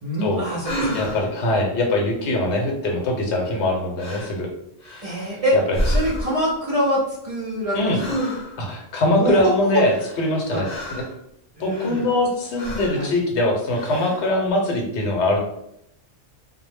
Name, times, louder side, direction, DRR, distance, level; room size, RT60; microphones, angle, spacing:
voice 1, 0.0-1.2 5.0-5.6 5.8-8.1 9.1-9.7 10.5-10.7 11.6-12.0 12.9-13.1, equal, 45° right, -5 dB, 0.5 m, -24 dB
sound 1, 0.6-1.4 3.5-3.7 4.0-4.4 4.8-5.4 5.7-6.5 7.9-8.7 9.8-11.2 11.7-12.3 12.5-13.0 13.7-14.3, equal, 45° left, 0.7 m, -29 dB
voice 2, 0.9-4.5 5.5-5.8 7.7-8.0 8.6-9.9 10.2-11.0 11.6-15.4, left 1 dB, 80° left, 1 dB, 0.9 m, -22 dB
2.1 x 2.0 x 3.2 m, 0.78 s
omnidirectional pair, 1.1 m